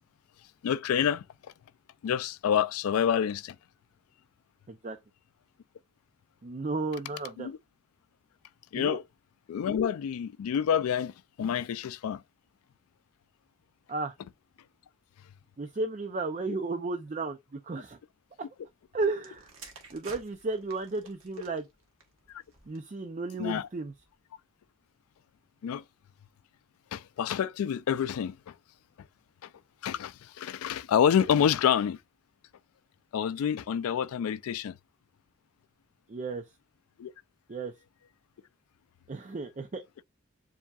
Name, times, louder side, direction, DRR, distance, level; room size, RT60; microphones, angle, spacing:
voice 1, 0.6-1.2 2.0-3.6 7.4-7.6 8.7-9.0 9.5-12.2 22.3-22.4 23.4-23.7 25.6-25.8 26.9-28.5 29.4-29.5 29.8-32.0 33.1-34.8 37.0-37.1, left 8 dB, 80° left, 0.3 m, -28 dB
voice 2, 6.4-7.5 8.7-9.0 13.9-14.1 15.6-17.4 17.6-18.0 18.9-19.5 19.9-21.7 22.7-23.9 36.1-36.4 37.5-37.7 39.1-39.8, right 3 dB, 35° right, 0.4 m, -33 dB
sound 1, 19.2-23.0 23.8-24.1, right 4 dB, 70° right, 1.1 m, -52 dB
7.1 x 2.6 x 2.3 m
head